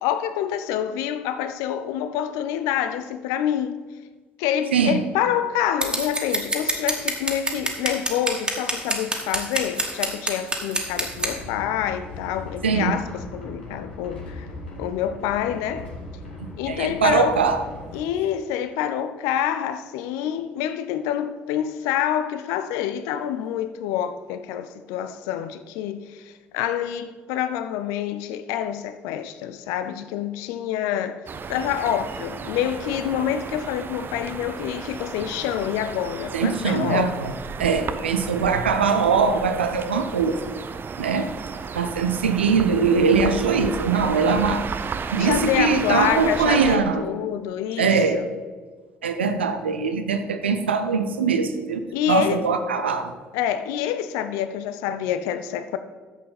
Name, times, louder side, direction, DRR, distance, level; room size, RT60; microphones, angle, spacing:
voice 1, 0.0-3.8 4.4-14.5 14.8-15.9 16.6-17.4 17.9-31.2 31.5-37.1 45.2-48.3 51.9-52.5 53.3-55.8, left 10 dB, 65° left, 0.5 m, -27 dB
Scissors, 5.8-11.3, right 1 dB, 15° right, 1.9 m, -26 dB
sound 1, 10.9-18.0, left 2 dB, 80° left, 1.6 m, -39 dB
voice 2, 12.6-12.9 16.4-17.6 36.3-37.3 37.6-40.4 41.0-41.3 41.8-44.7 45.1-47.0 47.8-48.2 49.0-53.1, right 5 dB, 80° right, 0.6 m, -22 dB
sound 2, 31.3-46.8, right 5 dB, 35° right, 0.6 m, -34 dB
11.5 x 7.6 x 4.1 m
figure-of-eight pair, 45°, 6 cm